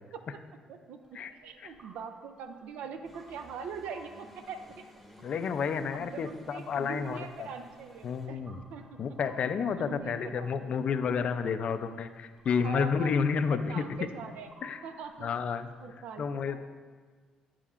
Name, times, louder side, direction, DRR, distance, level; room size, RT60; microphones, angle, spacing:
voice 1, 0.7-4.8 5.5-8.4 8.7-9.1 9.7-10.7 12.6-13.1 13.5-14.5 14.8-15.3 15.8-16.6, right 6 dB, 80° right, 7 dB, 0.4 m, -42 dB
sound 1, 1.0-15.9, right 1 dB, 25° right, 1.0 m, -58 dB
sound 2, 3.0-8.3, left 1 dB, ahead, 0.9 m, -57 dB
voice 2, 5.2-7.5 8.0-8.6 9.0-13.8 14.6-14.8 15.2-15.7 16.2-16.6, left 6 dB, 55° left, 10 dB, 0.4 m, -30 dB
7.6 x 7.3 x 2.4 m, 1.5 s
cardioid pair, 105°, 2 cm